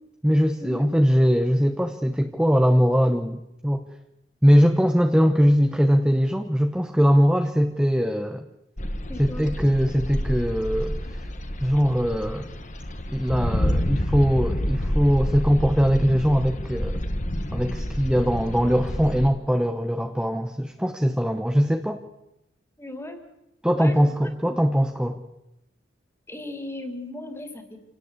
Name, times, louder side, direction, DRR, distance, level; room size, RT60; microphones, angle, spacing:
voice 1, 0.2-3.9 4.4-8.5 9.2-11.2 11.6-12.5 13.1-17.0 17.5-22.0 23.6-25.2, equal, 5° right, 6 dB, 0.9 m, -21 dB
sound 1, 8.8-19.3, equal, 40° left, 1.6 m, -28 dB
voice 2, 9.1-9.5 22.8-23.2 23.7-24.6 26.3-27.8, left 1 dB, 15° left, 6 dB, 3.0 m, -37 dB
27.0 x 18.0 x 8.2 m, 0.89 s
head